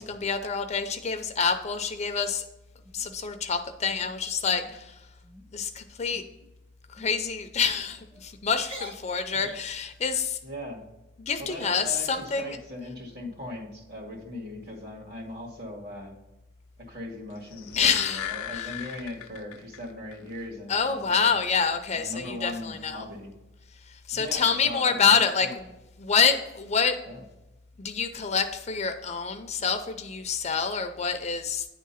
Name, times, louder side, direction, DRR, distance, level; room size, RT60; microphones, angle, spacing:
voice 1, 0.0-2.4 2.9-5.1 5.5-6.2 6.9-10.4 11.2-12.6 17.8-18.3 18.5-18.7 20.7-23.0 23.8-25.5 26.0-27.0 27.8-31.7, left 6 dB, 30° left, 7 dB, 0.5 m, -27 dB
sound 1, 2.8-3.4 3.9-4.1 4.5-4.8 5.1-5.5 6.1-6.5 7.0-7.1 7.9-8.2 8.6-9.8, equal, 25° right, 0.9 m, -45 dB
voice 2, 10.4-10.8 11.4-16.1 16.8-21.3 21.9-23.3 24.1-25.5 27.1-27.2, left 1 dB, 50° right, -1 dB, 2.0 m, -39 dB
sound 2, 17.4-19.8 20.1-20.2, left 11 dB, 85° left, 0.5 m, -37 dB
9.8 x 3.7 x 5.6 m, 0.99 s
head